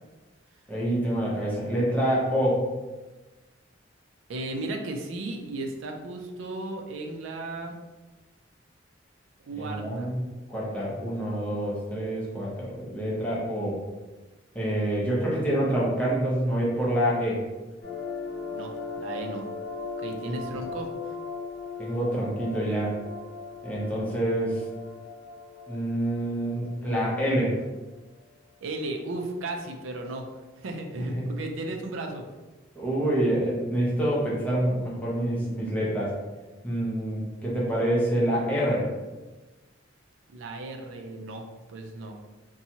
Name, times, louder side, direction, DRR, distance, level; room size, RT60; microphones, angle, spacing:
voice 1, 0.7-2.7 9.6-10.2 10.5-13.8 14.5-17.4 20.3-20.4 21.8-23.0 23.6-24.6 25.7-27.6 31.0-31.2 32.7-36.1 36.6-38.9, right 1 dB, 10° left, -6 dB, 0.7 m, -27 dB
voice 2, 4.3-7.8 9.4-10.1 18.5-19.5 20.0-20.9 28.6-30.3 30.6-32.2 40.3-42.2, right 2 dB, 90° right, 3 dB, 0.4 m, -35 dB
sound 1, 17.8-27.6, left 4 dB, 55° left, 0.9 m, -38 dB
2.7 x 2.2 x 2.8 m, 1.2 s
head